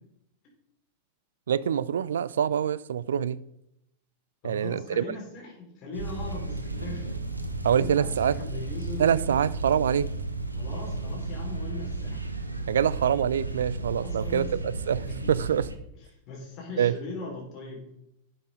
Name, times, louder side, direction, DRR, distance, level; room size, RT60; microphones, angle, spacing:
voice 1, 1.5-3.4 4.4-5.0 7.6-8.3 9.0-10.1 12.7-15.7 16.8-16.9, right 8 dB, 65° right, 0.4 m, -25 dB
voice 2, 4.4-7.3 7.7-9.3 10.5-12.3 13.9-14.5 15.0-15.6 16.0-17.9, left 3 dB, 40° left, 4.7 m, -40 dB
sound 1, 5.9-15.8, right 3 dB, 85° right, 1.0 m, -34 dB
11.5 x 7.9 x 3.9 m
figure-of-eight pair, 90°, 0 cm